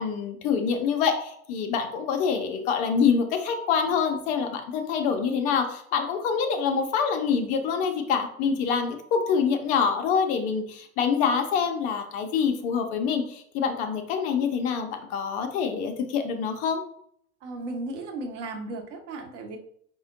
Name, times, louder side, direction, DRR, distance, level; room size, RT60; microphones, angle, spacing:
voice 1, 0.0-16.8, left 6 dB, 20° left, 5 dB, 0.3 m, -26 dB
voice 2, 17.4-19.6, right 2 dB, 55° right, 4 dB, 1.0 m, -35 dB
4.8 x 2.1 x 3.8 m, 0.66 s
figure-of-eight pair, 85°, 42 cm